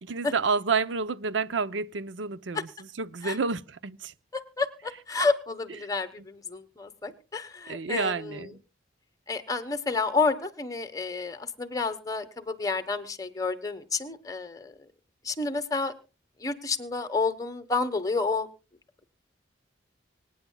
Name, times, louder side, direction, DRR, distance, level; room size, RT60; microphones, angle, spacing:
voice 1, 0.0-4.1 7.7-8.6, right 4 dB, 75° right, 0.6 m, -29 dB
voice 2, 4.6-8.5 9.3-14.7 15.2-15.9 16.4-18.5, left 4 dB, 20° left, 1.1 m, -30 dB
25.5 x 9.3 x 2.2 m
head